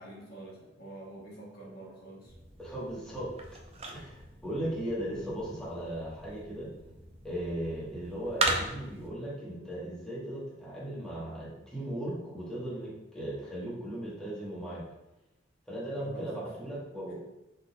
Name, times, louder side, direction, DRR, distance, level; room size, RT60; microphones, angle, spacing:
voice 1, 0.0-2.3 16.0-16.4, right 1 dB, 55° left, -4 dB, 1.3 m, -46 dB
sound 1, 2.2-9.1, right 2 dB, 35° right, 0.5 m, -37 dB
voice 2, 2.6-3.3 3.9-6.7 7.2-14.8 15.7-17.1, right 1 dB, 5° left, -8 dB, 1.2 m, -37 dB
5.8 x 3.7 x 2.2 m, 0.93 s
head